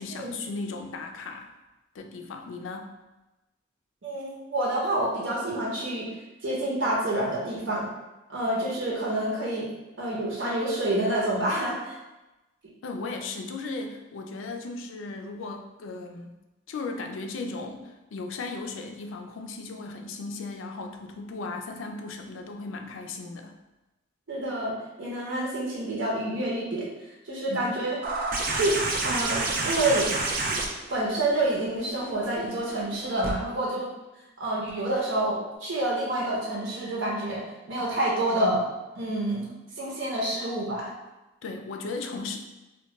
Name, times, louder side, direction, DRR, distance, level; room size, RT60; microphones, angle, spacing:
voice 1, 0.0-1.5 1.9-2.9 12.8-16.3 16.7-23.6 27.5-27.7 41.4-42.4, left 3 dB, 80° left, 4 dB, 0.4 m, -36 dB
voice 2, 4.0-6.1 6.4-7.9 8.3-9.7 10.0-12.0 24.3-26.9 27.2-28.0 28.5-28.7 29.0-30.1 30.5-30.6 30.9-33.9 34.4-38.6 38.9-40.9, right 1 dB, 75° right, -5 dB, 0.8 m, -28 dB
sound 1, 28.0-33.3 34.7-34.8, right 2 dB, 45° right, 0.4 m, -29 dB
2.2 x 2.2 x 3.9 m, 1.0 s
head